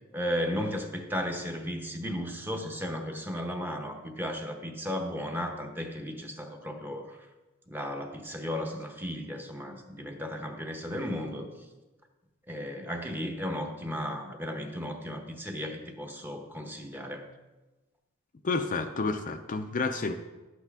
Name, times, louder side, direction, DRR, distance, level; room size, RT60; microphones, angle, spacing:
voice 1, 0.1-7.2 7.7-11.5 12.5-17.3, equal, 10° right, 3 dB, 0.9 m, -35 dB
voice 2, 18.4-20.1, left 3 dB, 35° left, 6 dB, 0.5 m, -30 dB
12.0 x 8.1 x 3.5 m, 1.1 s
head